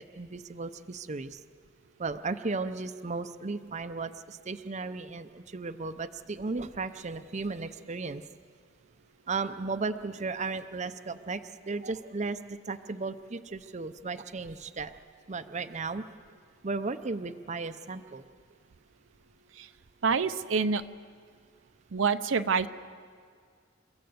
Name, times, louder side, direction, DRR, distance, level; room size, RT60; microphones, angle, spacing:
voice 1, 0.0-1.4 2.0-8.2 9.3-14.9 15.3-16.1 16.6-18.2, right 3 dB, 35° right, 9 dB, 0.6 m, -35 dB
voice 2, 20.0-20.8 21.9-22.7, right 5 dB, 75° right, 10 dB, 0.7 m, -26 dB
29.5 x 14.5 x 7.9 m, 2.1 s
head